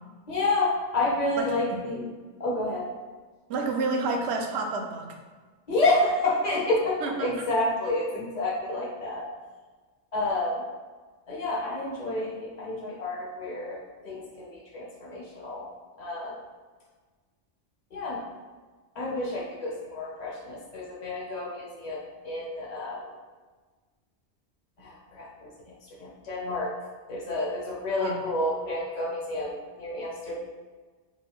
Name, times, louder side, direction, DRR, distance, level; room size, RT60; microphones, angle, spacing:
voice 1, 0.3-2.1 2.4-2.9 5.7-9.2 10.1-10.6 11.3-13.8 14.0-15.7 16.0-16.4 17.9-18.2 18.9-23.0 24.8-26.7 27.1-30.4, left 2 dB, 40° left, -4 dB, 1.0 m, -29 dB
voice 2, 3.5-5.1 7.0-7.3 28.0-28.2, right 3 dB, 70° right, 3 dB, 0.8 m, -29 dB
5.0 x 2.2 x 3.4 m, 1.4 s
omnidirectional pair, 1.2 m